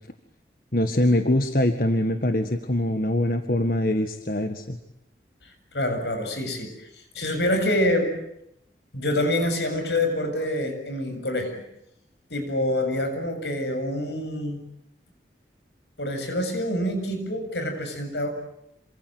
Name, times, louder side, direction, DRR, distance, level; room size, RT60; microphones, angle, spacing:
voice 1, 0.7-4.8, left 1 dB, 55° left, 7 dB, 1.7 m, -23 dB
voice 2, 5.4-6.9 7.1-8.2 8.9-11.6 12.3-14.6 16.0-18.3, left 1 dB, 85° left, 7 dB, 7.4 m, -26 dB
28.0 x 25.5 x 8.0 m, 0.80 s
head